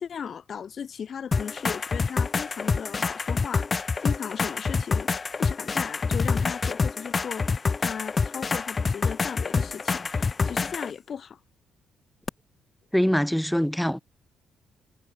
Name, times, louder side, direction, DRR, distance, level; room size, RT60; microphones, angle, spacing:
voice 1, 0.0-11.4, left 7 dB, 55° left, 3.5 m, -37 dB
sound 1, 1.3-10.9 12.3-12.4, left 4 dB, 35° left, 0.6 m, -27 dB
voice 2, 12.9-14.0, equal, ahead, 1.6 m, -23 dB
cardioid pair, 90°, 0 cm